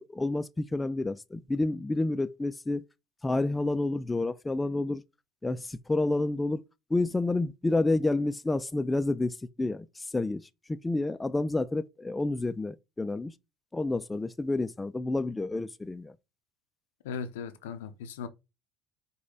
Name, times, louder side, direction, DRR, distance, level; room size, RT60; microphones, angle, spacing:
voice 1, 0.0-2.8 3.2-5.0 5.4-6.6 6.9-10.4 10.7-13.3 13.7-16.2, left 2 dB, 15° left, 0.3 m, -29 dB
voice 2, 17.0-18.3, left 6 dB, 85° left, 0.6 m, -37 dB
5.1 x 2.2 x 3.9 m
hypercardioid pair, 80°, 0 cm